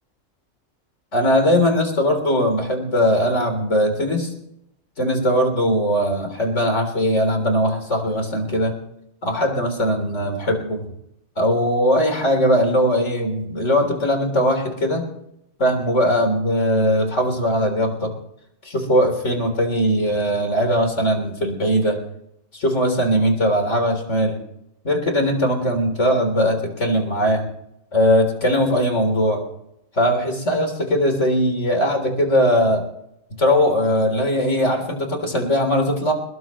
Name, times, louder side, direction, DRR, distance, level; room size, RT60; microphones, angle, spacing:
voice 1, 1.1-4.3 5.0-8.7 9.2-10.8 11.4-15.0 15.6-18.1 18.6-22.0 22.5-24.4 24.8-27.5 27.9-29.4 30.0-32.8 33.4-36.1, equal, 75° left, 4 dB, 4.0 m, -20 dB
21.5 x 21.0 x 3.2 m, 0.78 s
omnidirectional pair, 1.2 m